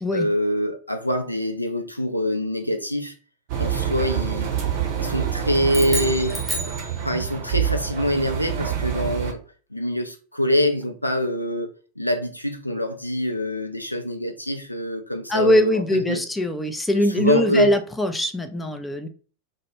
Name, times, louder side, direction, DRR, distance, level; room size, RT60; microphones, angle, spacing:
voice 1, 0.1-3.1 3.6-4.5 5.0-6.4 7.0-9.4 9.7-11.7 12.0-16.2 17.2-17.7, left 1 dB, 85° left, 0.4 m, -25 dB
Engine, 3.5-9.3, right 9 dB, 45° right, 0.6 m, -26 dB
sound 1, 5.7-7.5, right 1 dB, 10° right, 0.8 m, -31 dB
voice 2, 15.3-19.1, left 1 dB, 5° left, 0.3 m, -22 dB
2.2 x 2.1 x 3.0 m
figure-of-eight pair, 90°, 0 cm